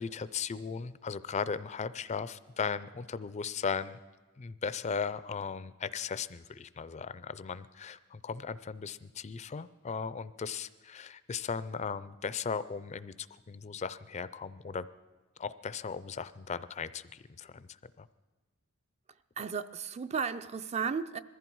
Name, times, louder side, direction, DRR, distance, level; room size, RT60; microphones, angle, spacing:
voice 1, 0.0-4.0 4.4-14.9 15.4-17.7 18.0-18.1, left 6 dB, 30° left, 0.4 m, -37 dB
voice 2, 19.4-21.2, right 6 dB, 30° right, 0.4 m, -34 dB
21.5 x 14.5 x 4.6 m
head